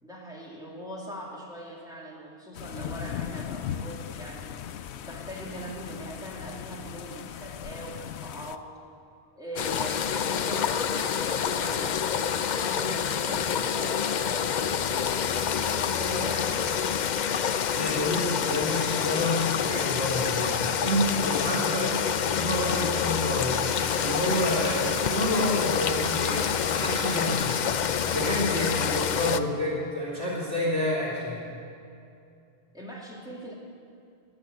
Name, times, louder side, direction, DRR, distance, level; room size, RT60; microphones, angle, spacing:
voice 1, 0.0-4.5 5.0-8.7 9.4-12.1 12.4-14.8 15.3-16.7 28.2-28.7 32.7-33.5, right 1 dB, 5° right, -4 dB, 2.7 m, -41 dB
sound 1, 2.5-8.6, left 9 dB, 90° left, 0.9 m, -38 dB
sound 2, 9.6-29.4, left 8 dB, 55° left, 0.6 m, -27 dB
voice 2, 17.7-22.0 22.3-23.6 23.9-26.5 26.8-27.5 28.1-31.4, left 1 dB, 85° right, -6 dB, 2.9 m, -29 dB
Tools, 23.6-27.6, left 2 dB, 30° left, 1.2 m, -39 dB
20.5 x 7.2 x 8.0 m, 2.5 s
omnidirectional pair, 1.1 m